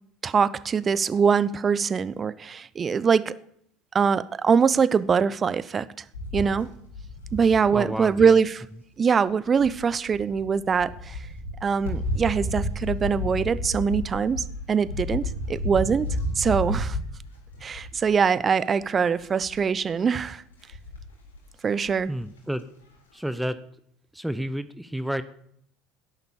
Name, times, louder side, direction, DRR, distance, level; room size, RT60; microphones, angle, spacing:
voice 1, 0.2-3.3 3.9-5.9 6.3-6.7 7.3-8.6 9.0-11.2 11.6-16.1 16.4-17.0 17.6-20.4 21.6-22.1, right 6 dB, 30° right, 0.9 m, -23 dB
sound 1, 6.1-8.4 9.6-18.2 18.6-18.9 19.2-19.7 20.5-21.4 21.9-22.0 22.2-22.3, left 1 dB, 75° left, 3.8 m, -32 dB
voice 2, 7.7-8.4 22.1-22.6 23.1-23.6 24.1-25.2, equal, 5° right, 1.0 m, -30 dB
17.0 x 11.0 x 7.2 m
figure-of-eight pair, 70°, 0 cm